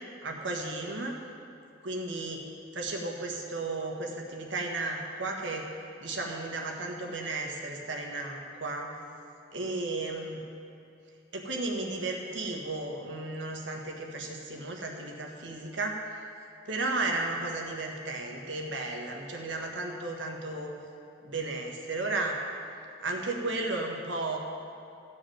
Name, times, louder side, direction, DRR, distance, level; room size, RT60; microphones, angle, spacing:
voice 1, 0.2-1.2 1.8-2.5 2.7-5.7 6.0-8.9 9.5-10.5 11.3-16.0 16.6-20.7 21.2-22.4 23.0-24.4, right 2 dB, 70° right, 1 dB, 1.5 m, -34 dB
14.5 x 4.9 x 9.0 m, 2.5 s
head